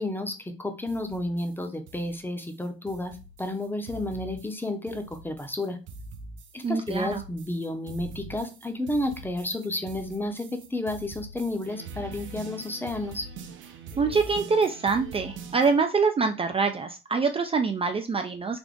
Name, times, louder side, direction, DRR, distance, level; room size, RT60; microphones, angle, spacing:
voice 1, 0.0-5.8 6.5-13.2, left 1 dB, 10° left, 6 dB, 0.7 m, -31 dB
sound 1, 0.9-15.8, right 3 dB, 75° right, 0.6 m, -44 dB
voice 2, 6.6-7.2 14.0-18.6, right 4 dB, 30° right, 6 dB, 0.4 m, -25 dB
3.5 x 2.5 x 3.8 m, 0.31 s
cardioid pair, 90°, 20 cm